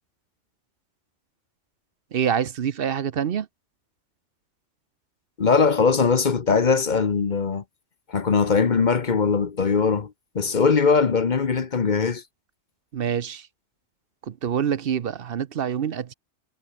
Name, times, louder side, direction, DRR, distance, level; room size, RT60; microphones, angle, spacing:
voice 1, 2.1-3.5 12.9-13.5 14.2-16.1, right 8 dB, 55° right, 0.8 m, -26 dB
voice 2, 5.4-7.6 8.1-12.2, left 5 dB, 40° left, 1.0 m, -21 dB
omnidirectional pair, 1.3 m